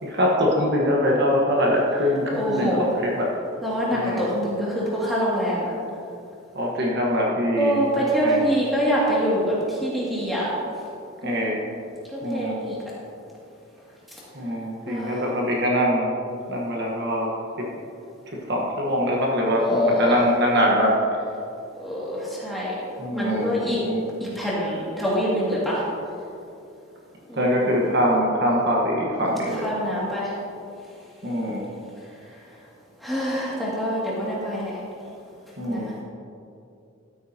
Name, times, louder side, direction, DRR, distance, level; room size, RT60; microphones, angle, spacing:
voice 1, 0.0-3.3 3.9-4.2 6.5-8.5 11.2-11.6 12.2-12.6 14.3-16.1 16.5-17.3 18.5-20.9 23.0-24.0 27.3-29.6 31.2-31.6 35.6-35.9, equal, 50° right, -2 dB, 1.3 m, -23 dB
voice 2, 2.3-2.8 3.6-5.7 7.6-10.5 11.2-11.4 12.1-12.8 14.9-15.1 19.6-20.2 21.8-22.7 23.1-23.8 24.4-25.8 27.3-27.5 29.6-30.3 33.0-34.8 35.6-36.0, equal, ahead, -8 dB, 2.2 m, -25 dB
13.0 x 9.3 x 2.8 m, 2.6 s
head